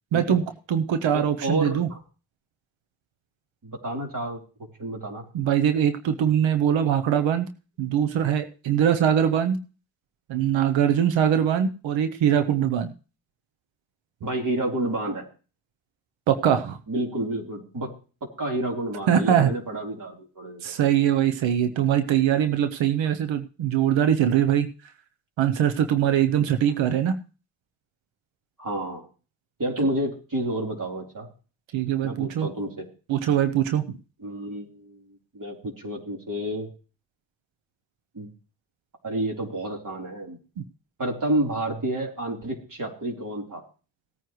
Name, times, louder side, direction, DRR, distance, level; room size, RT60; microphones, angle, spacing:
voice 1, 0.1-0.4 0.7-1.9 5.3-7.5 7.8-9.6 10.3-12.9 16.3-16.8 19.1-19.5 20.6-24.7 25.4-27.1 31.7-32.5 33.1-34.0 40.6-40.7, right 9 dB, 90° right, 9 dB, 0.8 m, -22 dB
voice 2, 1.1-2.0 3.6-4.4 4.8-5.3 14.2-15.3 16.9-17.9 18.4-20.6 26.6-26.7 28.6-29.0 29.6-31.3 32.0-32.9 34.2-36.7 38.1-38.3 39.0-40.4 41.0-43.6, right 1 dB, 45° right, 0 dB, 3.7 m, -30 dB
17.5 x 9.3 x 3.1 m, 0.36 s
cardioid pair, 50°, 45 cm